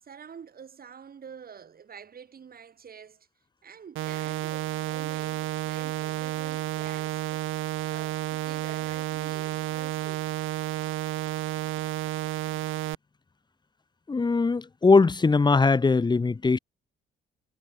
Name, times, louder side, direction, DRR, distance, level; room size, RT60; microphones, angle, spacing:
voice 1, 0.0-3.3 3.6-10.3, right 7 dB, 50° right, 5.8 m, -47 dB
sound 1, 4.0-13.0, right 15 dB, 85° right, 1.7 m, -31 dB
voice 2, 14.1-16.6, left 4 dB, 20° left, 1.0 m, -21 dB
cardioid pair, 90°, 20 cm